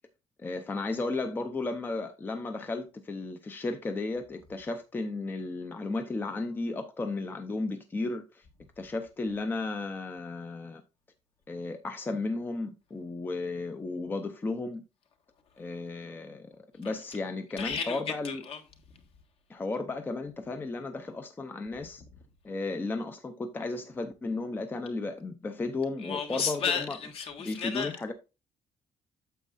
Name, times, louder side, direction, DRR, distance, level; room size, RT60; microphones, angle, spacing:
voice 1, 0.4-8.5 8.8-10.8 11.5-14.8 15.6-18.4 19.5-22.0 22.4-27.0 27.4-28.1, left 3 dB, 15° left, 0.6 m, -34 dB
voice 2, 17.6-18.6 26.0-27.9, left 6 dB, 50° left, 1.5 m, -33 dB
9.1 x 7.3 x 2.5 m
cardioid pair, 175°, 12 cm